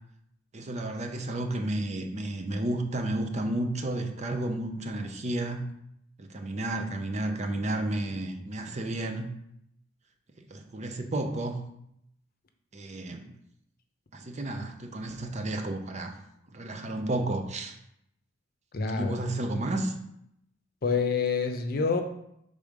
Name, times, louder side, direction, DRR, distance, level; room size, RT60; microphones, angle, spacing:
voice 1, 0.5-5.6 6.2-9.3 10.5-11.6 12.7-13.3 14.1-16.1 16.5-17.8 19.0-19.9, right 1 dB, 35° right, 5 dB, 0.7 m, -32 dB
voice 2, 18.7-19.2 20.8-22.0, left 5 dB, 50° left, 6 dB, 0.7 m, -27 dB
5.0 x 3.7 x 5.3 m, 0.77 s
head